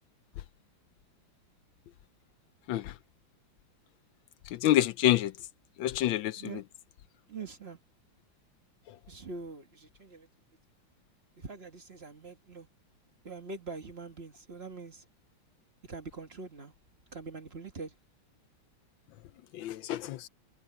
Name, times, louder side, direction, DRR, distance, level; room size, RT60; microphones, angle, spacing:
voice 1, 4.6-5.3 5.8-6.4 19.6-20.3, left 13 dB, 80° left, 1.3 m, -27 dB
voice 2, 7.3-7.8 9.1-10.3 11.4-12.7 13.2-15.0 15.9-16.7 17.1-17.9, right 4 dB, 35° right, 1.4 m, -43 dB
omnidirectional pair, 2.2 m